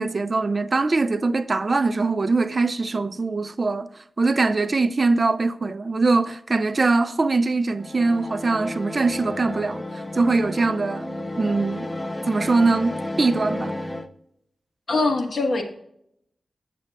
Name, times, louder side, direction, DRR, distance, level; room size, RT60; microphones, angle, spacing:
voice 1, 0.0-3.9 4.2-11.1 11.4-11.9 12.3-13.7, right 3 dB, 40° right, 0.3 m, -22 dB
sound 1, 7.7-14.1, left 1 dB, 15° left, 0.5 m, -32 dB
voice 2, 14.9-15.6, left 3 dB, 55° left, 1.2 m, -22 dB
8.4 x 7.5 x 2.3 m
wide cardioid pair, 90°, 0 cm